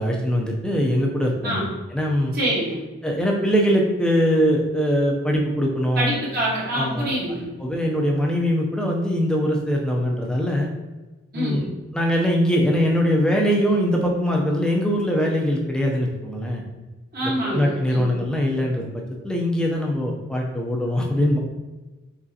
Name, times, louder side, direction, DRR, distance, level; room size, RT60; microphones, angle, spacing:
voice 1, 0.0-1.6 1.9-2.3 3.0-6.1 6.7-7.1 7.6-10.7 11.3-11.7 11.9-16.6 17.2-21.4, equal, 5° left, -1 dB, 0.6 m, -22 dB
voice 2, 2.3-2.8 6.0-7.5 11.3-11.7 17.1-18.1, right 1 dB, 45° right, -6 dB, 1.4 m, -25 dB
5.0 x 3.7 x 2.8 m, 1.2 s
head